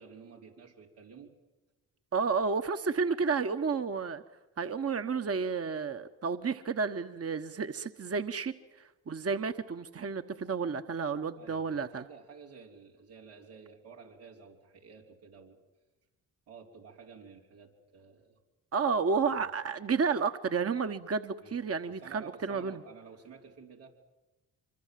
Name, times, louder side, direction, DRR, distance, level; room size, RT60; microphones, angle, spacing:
voice 1, 0.0-1.3 11.4-15.6 16.5-18.4 19.4-19.6 21.4-21.5 21.9-23.9, right 5 dB, 90° right, -2 dB, 4.1 m, -52 dB
voice 2, 2.1-4.2 4.6-12.0 18.7-22.8, right 5 dB, 35° right, 8 dB, 1.3 m, -31 dB
25.0 x 25.0 x 7.7 m, 1.0 s
hypercardioid pair, 50°, 41 cm